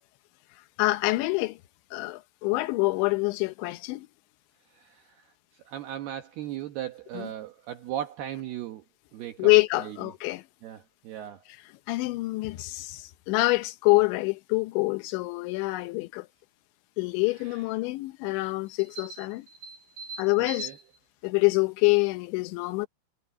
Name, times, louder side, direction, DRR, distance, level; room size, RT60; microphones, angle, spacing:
voice 1, 0.8-1.6 1.9-4.1 7.1-7.3 9.4-10.4 11.9-16.3 17.0-19.4 20.2-20.7 21.2-22.9, left 23 dB, 80° left, 3.1 m, -26 dB
voice 2, 4.7-5.3 5.5-8.8 9.1-9.5 9.8-10.0 10.6-11.4 17.4-17.6 19.0-20.8, right 10 dB, 70° right, 2.8 m, -38 dB
omnidirectional pair, 5.4 m